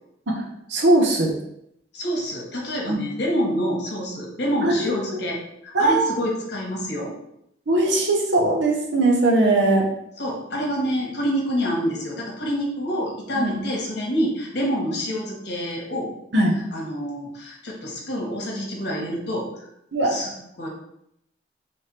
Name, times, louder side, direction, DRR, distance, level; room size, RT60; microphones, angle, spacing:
voice 1, 0.3-1.3 2.9-3.0 4.6-4.9 5.7-6.1 7.7-9.8 13.3-13.6 16.3-16.6 19.9-20.1, right 2 dB, 65° right, 1 dB, 0.9 m, -20 dB
voice 2, 1.9-7.1 10.2-16.1 16.7-19.5 20.0-20.7, equal, 60° left, -1 dB, 1.3 m, -27 dB
3.4 x 3.3 x 4.3 m, 0.78 s
head